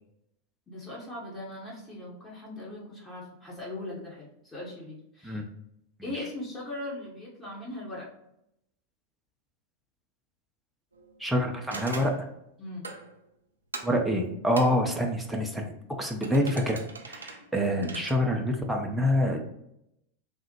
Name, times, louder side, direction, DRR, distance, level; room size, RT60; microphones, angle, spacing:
voice 1, 0.7-5.4 6.0-8.1 12.6-12.9, left 1 dB, 20° left, -5 dB, 0.9 m, -39 dB
sound 1, 10.9-11.2 11.7-12.2 12.8-13.2 13.7-14.0 14.6-15.0 16.2-18.1, right 3 dB, 75° right, 0.3 m, -41 dB
voice 2, 11.2-12.1 13.8-15.7 16.0-16.8 17.1-19.4, equal, ahead, 0 dB, 0.4 m, -26 dB
3.3 x 2.1 x 2.8 m, 0.79 s
figure-of-eight pair, 90°, 0 cm